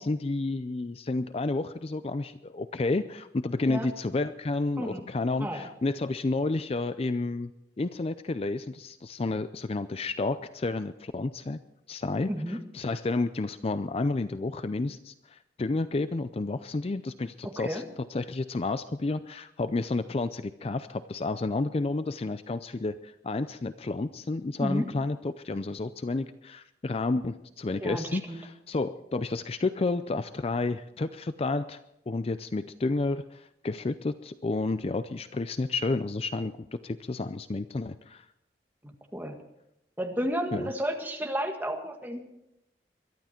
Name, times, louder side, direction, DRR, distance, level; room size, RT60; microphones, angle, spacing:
voice 1, 0.0-7.5 7.8-11.6 11.9-31.8 32.1-38.3 40.5-40.7, left 3 dB, 35° left, 12 dB, 0.4 m, -31 dB
voice 2, 12.3-12.6 17.4-17.8 24.6-24.9 27.8-28.4 39.1-39.4 40.0-42.3, equal, 10° right, 3 dB, 1.8 m, -32 dB
22.5 x 12.0 x 4.4 m, 0.84 s
head